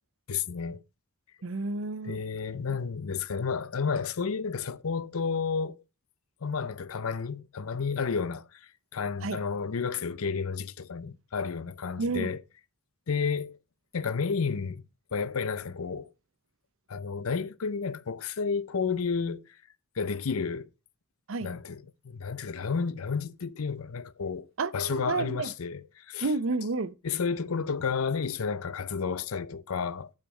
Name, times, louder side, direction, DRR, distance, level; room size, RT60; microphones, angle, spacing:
voice 1, 0.3-0.8 2.0-5.8 6.4-12.4 13.1-13.6 13.9-16.1 16.9-19.4 20.0-20.7 21.4-26.3 27.0-30.1, left 5 dB, 80° left, 0.6 m, -31 dB
voice 2, 1.4-2.2 2.7-2.8 9.2-9.4 12.0-12.3 21.3-21.5 24.6-25.5 26.2-26.9, right 3 dB, 65° right, 0.6 m, -30 dB
7.5 x 7.3 x 4.4 m
head